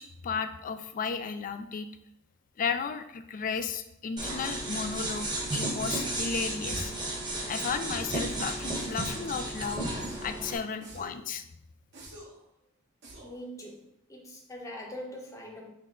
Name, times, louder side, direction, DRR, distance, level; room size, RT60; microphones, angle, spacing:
voice 1, 0.0-1.9 2.6-6.9 7.5-9.9 10.2-11.4, left 5 dB, 35° left, 9 dB, 0.3 m, -34 dB
sound 1, 4.2-10.6, right 1 dB, 20° right, 1.0 m, -33 dB
sound 2, 6.7-7.1 7.9-8.2 8.8-9.3 10.0-10.4 10.8-11.2 11.9-12.4 13.0-13.4, equal, 55° right, 1.2 m, -45 dB
voice 2, 13.2-15.7, equal, 15° left, -1 dB, 0.8 m, -43 dB
6.3 x 2.2 x 3.7 m, 0.78 s
head